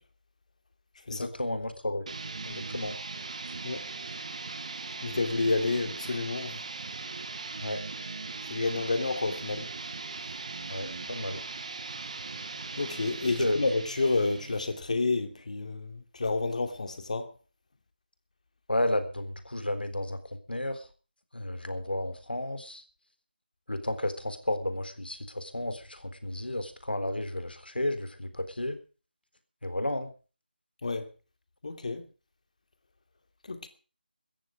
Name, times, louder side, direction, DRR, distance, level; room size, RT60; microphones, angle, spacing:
voice 1, 1.1-2.1 2.4-2.9 7.6-7.8 10.7-11.4 13.4-13.6 18.7-20.2 20.5-20.8 21.3-22.8 23.7-28.8 29.6-30.1, left 1 dB, 75° left, 3.8 m, -32 dB
sound 1, 2.1-14.9, right 3 dB, 40° right, 2.1 m, -39 dB
voice 2, 5.0-6.6 8.5-9.7 12.8-17.3 30.8-31.1 31.6-32.0 33.5-33.7, left 3 dB, 45° left, 2.7 m, -29 dB
17.0 x 14.0 x 5.0 m
figure-of-eight pair, 160°, 5 cm